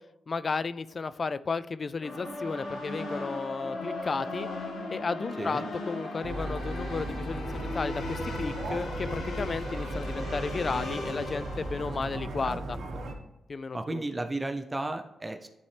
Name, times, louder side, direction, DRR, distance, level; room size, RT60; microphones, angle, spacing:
voice 1, 0.3-4.5 4.9-12.8 13.5-14.0, left 4 dB, 45° left, 15 dB, 0.3 m, -33 dB
sound 1, 2.0-12.1, left 2 dB, 90° left, 1.8 m, -38 dB
voice 2, 5.4-5.7 12.4-12.6 13.7-15.5, right 2 dB, 20° right, 5 dB, 0.6 m, -33 dB
sound 2, 6.2-13.1, right 1 dB, 75° right, 1.2 m, -36 dB
11.5 x 4.2 x 3.3 m, 1.0 s
cardioid pair, 85°, 0 cm